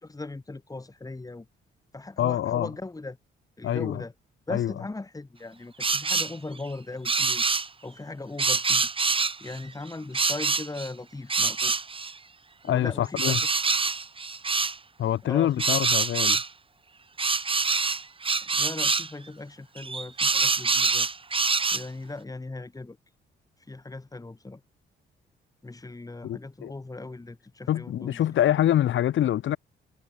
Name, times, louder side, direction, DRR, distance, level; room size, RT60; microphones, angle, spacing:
voice 1, 0.0-1.5 1.9-3.2 3.6-4.1 4.5-7.4 7.8-8.9 9.4-11.7 12.6-13.4 15.2-15.8 18.4-21.1 21.7-23.0 23.7-24.6 25.6-28.2, left 2 dB, 15° left, 5.2 m, -38 dB
voice 2, 2.2-2.7 3.6-4.0 4.5-4.7 12.7-13.4 15.0-16.4 26.2-26.7 27.7-29.6, left 11 dB, 75° left, 6.5 m, -25 dB
sound 1, 5.8-6.3 7.0-7.7 8.4-9.6 10.1-10.9 11.3-12.1 13.2-14.8 15.6-16.5 17.2-19.1 19.8-21.8, right 4 dB, 25° right, 1.9 m, -25 dB
cardioid pair, 90°, 20 cm